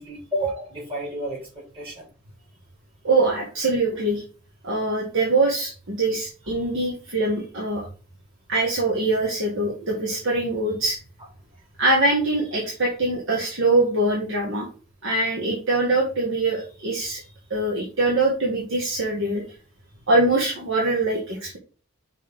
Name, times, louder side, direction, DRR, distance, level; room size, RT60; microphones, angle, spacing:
voice 1, 0.0-2.1 6.5-6.6, right 1 dB, 25° right, -4 dB, 3.6 m, -31 dB
voice 2, 3.0-4.2 4.6-7.9 8.5-11.0 11.8-14.7 15.0-17.2 17.5-19.4 20.1-21.6, right 2 dB, 60° right, -2 dB, 1.4 m, -23 dB
5.4 x 3.8 x 5.2 m, 0.37 s
head